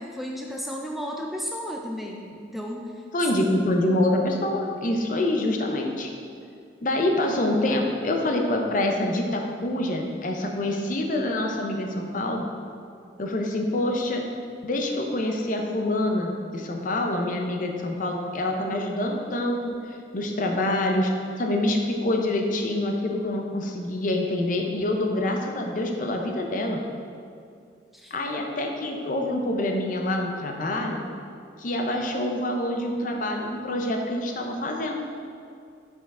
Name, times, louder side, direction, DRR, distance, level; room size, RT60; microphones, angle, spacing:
voice 1, 0.0-3.1 3.4-3.6 27.9-28.1, equal, ahead, 0 dB, 0.3 m, -34 dB
voice 2, 3.1-6.1 6.8-12.5 13.2-14.3 14.6-21.1 21.4-26.8 28.1-31.0 31.6-35.0, left 1 dB, 45° left, 2 dB, 0.6 m, -26 dB
5.6 x 5.3 x 3.7 m, 2.3 s
head